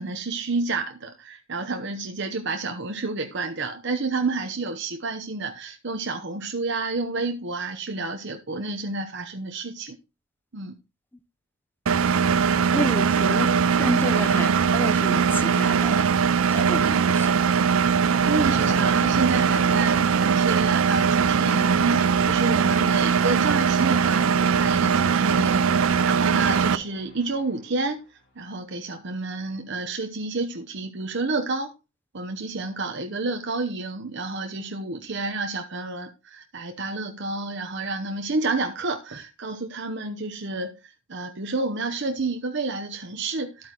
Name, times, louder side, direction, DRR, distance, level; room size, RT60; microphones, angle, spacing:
voice 1, 0.0-10.0 10.5-10.7 13.3-13.5 18.2-28.0 28.4-31.7 32.1-43.7, right 3 dB, 55° right, 0.9 m, -30 dB
Engine, 11.9-26.8, right 6 dB, 80° right, 0.5 m, -21 dB
voice 2, 12.7-16.1 16.5-17.4, left 1 dB, 10° left, 0.7 m, -31 dB
sound 1, 17.6-27.7, equal, 50° left, 3.5 m, -40 dB
12.5 x 8.7 x 3.0 m
head